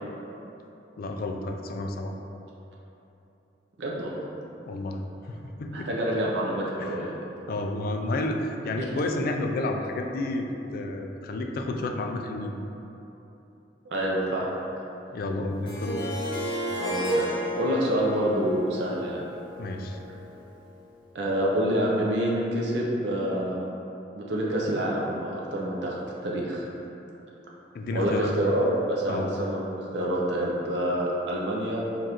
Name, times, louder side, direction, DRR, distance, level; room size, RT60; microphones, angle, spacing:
voice 1, 1.0-2.1 4.7-5.0 5.3-5.9 6.8-7.1 7.5-10.5 10.7-12.6 15.1-16.1 19.6-20.0 27.7-28.3 29.1-29.3, left 2 dB, 55° left, 3 dB, 0.3 m, -31 dB
voice 2, 3.8-4.1 5.7-7.1 8.8-8.9 13.9-14.5 16.8-17.3 17.5-19.2 21.1-23.6 24.1-26.6 27.9-29.7 29.9-31.8, right 1 dB, 75° right, -3 dB, 0.5 m, -27 dB
Harp, 15.7-20.6, equal, 25° left, 0.8 m, -32 dB
5.1 x 2.4 x 2.9 m, 3.0 s
head